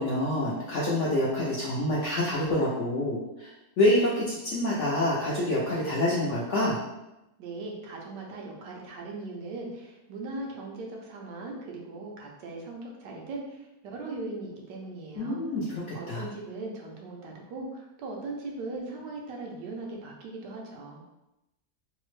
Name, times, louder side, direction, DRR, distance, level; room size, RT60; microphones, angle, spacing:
voice 1, 0.0-3.5 3.8-6.8 15.2-16.3, left 1 dB, 70° left, -6 dB, 0.7 m, -27 dB
voice 2, 7.4-13.6 13.9-15.4 15.9-21.0, right 2 dB, 90° right, -1 dB, 1.3 m, -39 dB
3.4 x 2.0 x 3.1 m, 0.93 s
omnidirectional pair, 1.8 m